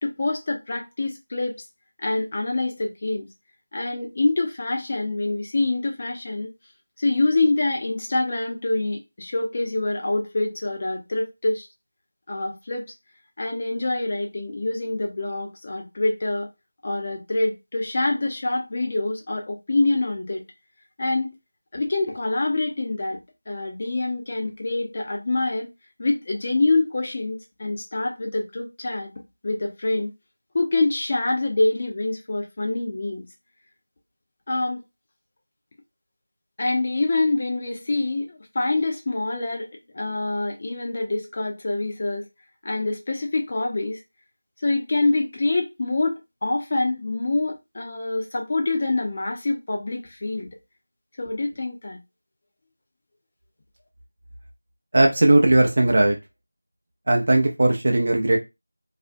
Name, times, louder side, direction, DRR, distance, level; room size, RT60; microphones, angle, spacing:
voice 1, 0.0-1.5 2.0-3.3 3.7-6.5 7.0-11.7 12.3-12.9 13.4-16.5 16.8-20.4 21.0-21.4 21.7-23.2 23.5-25.7 26.0-29.1 29.4-30.1 30.5-33.2 34.5-34.8 36.6-39.7 39.9-42.3 42.6-44.0 44.6-46.1 46.4-50.5 51.2-52.0, left 2 dB, 30° left, 0.6 m, -25 dB
voice 2, 54.9-56.2 57.1-58.4, right 2 dB, 45° right, 0.5 m, -18 dB
2.5 x 2.1 x 2.4 m
figure-of-eight pair, 175°, 0 cm